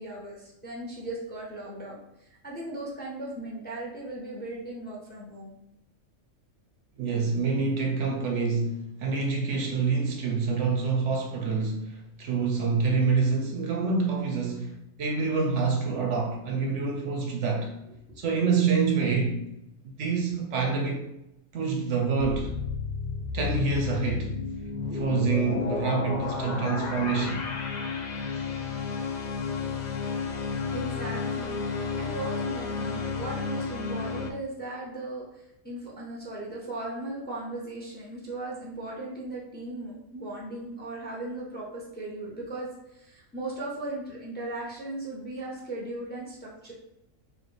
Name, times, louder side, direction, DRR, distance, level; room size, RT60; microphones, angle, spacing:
voice 1, 0.0-5.5 18.1-18.2 30.7-31.6 32.0-46.7, right 2 dB, 10° left, -4 dB, 0.6 m, -37 dB
voice 2, 7.0-17.7 18.2-19.5 20.0-21.1 21.5-22.6 23.3-24.3 24.9-27.4, right 4 dB, 70° right, 2 dB, 0.9 m, -27 dB
sound 1, 22.2-34.3, left 5 dB, 80° left, 0.4 m, -32 dB
4.3 x 2.5 x 3.2 m, 0.83 s
omnidirectional pair, 1.4 m